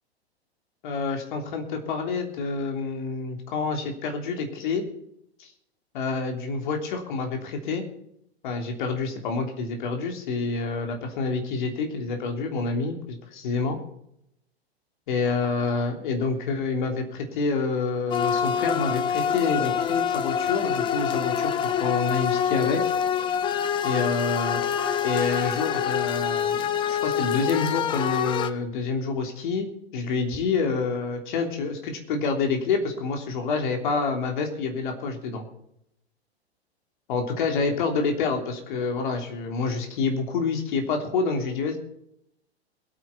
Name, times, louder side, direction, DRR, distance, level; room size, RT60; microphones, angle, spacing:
voice 1, 0.8-4.8 5.4-5.5 5.9-7.8 8.4-13.8 15.1-22.8 23.8-24.6 25.0-35.5 37.1-41.8, left 4 dB, 50° left, 4 dB, 3.3 m, -28 dB
sound 1, 18.1-28.5, left 8 dB, 15° left, 0.7 m, -26 dB
22.0 x 8.9 x 4.3 m, 0.75 s
figure-of-eight pair, 105°, 33 cm